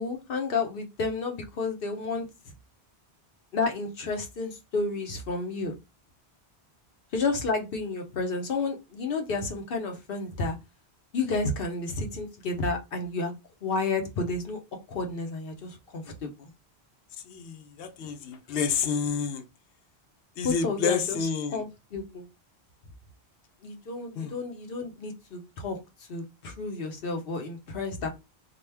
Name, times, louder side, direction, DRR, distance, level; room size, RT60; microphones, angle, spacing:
voice 1, 0.0-2.3 3.5-5.7 7.1-10.6 11.1-13.3 13.6-14.6 14.9-16.5 20.4-21.2 21.5-22.2 23.6-25.8 26.1-28.1, left 3 dB, 60° left, 0.9 m, -31 dB
voice 2, 17.2-19.4 20.4-21.6 24.2-24.4, left 6 dB, 85° left, 0.9 m, -29 dB
2.9 x 2.2 x 3.2 m
omnidirectional pair, 1.1 m